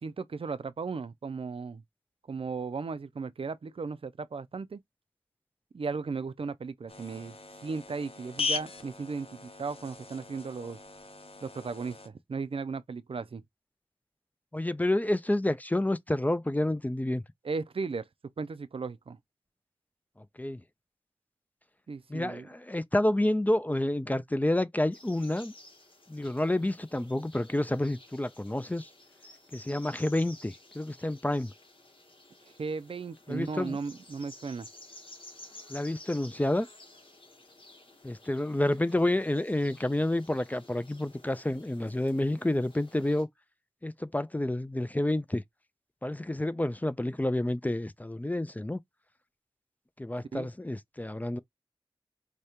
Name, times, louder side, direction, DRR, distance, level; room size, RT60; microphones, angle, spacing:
voice 1, 0.0-1.8 2.3-4.8 5.7-7.4 7.6-10.8 11.4-13.4 17.4-18.1 18.4-19.2 21.9-22.5 32.6-34.7 50.3-50.5, right 4 dB, 75° right, 0.4 m, -36 dB
sound 1, 6.9-12.1, left 4 dB, 85° left, 0.6 m, -39 dB
voice 2, 14.5-17.2 20.4-20.6 22.1-25.5 26.1-28.9 29.5-31.5 33.3-33.8 35.7-36.7 38.0-43.3 43.8-45.4 46.0-48.8 50.0-51.4, left 1 dB, 15° left, 0.3 m, -29 dB
sound 2, 24.9-43.2, left 2 dB, 65° left, 1.0 m, -53 dB
4.8 x 2.2 x 2.8 m
wide cardioid pair, 55°, 10 cm